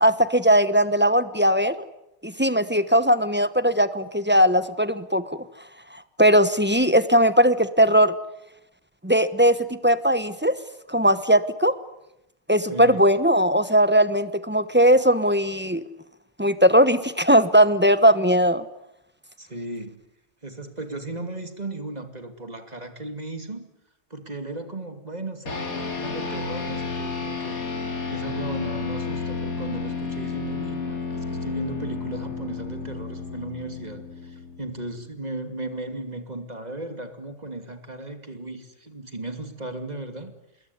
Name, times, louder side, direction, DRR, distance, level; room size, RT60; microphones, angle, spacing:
voice 1, 0.0-1.7 2.2-5.4 6.2-8.1 9.0-10.5 10.9-11.7 12.5-15.8 16.4-18.6, equal, 10° right, 13 dB, 1.0 m, -19 dB
voice 2, 12.7-13.0 19.4-20.0 20.4-23.6 24.1-27.6 28.1-40.3, right 2 dB, 30° right, 7 dB, 2.7 m, -35 dB
sound 1, 25.5-35.1, left 4 dB, 85° left, 3.2 m, -32 dB
27.5 x 21.0 x 9.6 m, 0.88 s
omnidirectional pair, 1.5 m